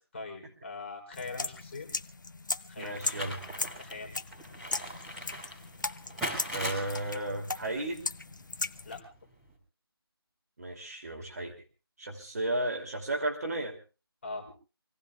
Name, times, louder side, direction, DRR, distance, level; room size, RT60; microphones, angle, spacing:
voice 1, 0.1-1.9 2.7-3.0 3.8-4.1 8.8-9.0 14.2-14.5, left 3 dB, 30° left, 2 dB, 4.2 m, -41 dB
sound 1, 1.1-9.0, left 3 dB, 50° left, 0.8 m, -38 dB
sound 2, 2.8-9.5, equal, ahead, 4.2 m, -41 dB
voice 2, 2.8-3.4 6.5-8.0 10.6-11.5 12.0-13.8, right 1 dB, 40° right, 1 dB, 2.9 m, -34 dB
27.0 x 18.0 x 2.4 m, 0.34 s
figure-of-eight pair, 170°, 13 cm